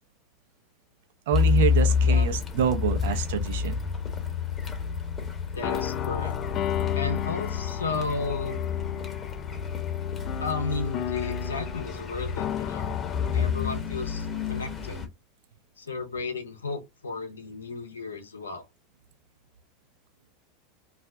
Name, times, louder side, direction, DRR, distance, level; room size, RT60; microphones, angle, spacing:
Car, 1.3-15.1, left 6 dB, 25° left, 0.8 m, -29 dB
voice 1, 1.3-3.8 7.9-8.0 13.3-13.5, right 9 dB, 65° right, 0.6 m, -27 dB
voice 2, 2.0-2.4 5.5-6.3 6.9-8.6 10.4-12.9 13.3-15.0 15.8-18.7, left 3 dB, 90° left, 0.7 m, -34 dB
sound 1, 5.6-14.0, left 10 dB, 45° left, 0.4 m, -34 dB
2.4 x 2.2 x 3.5 m
hypercardioid pair, 85°, 0 cm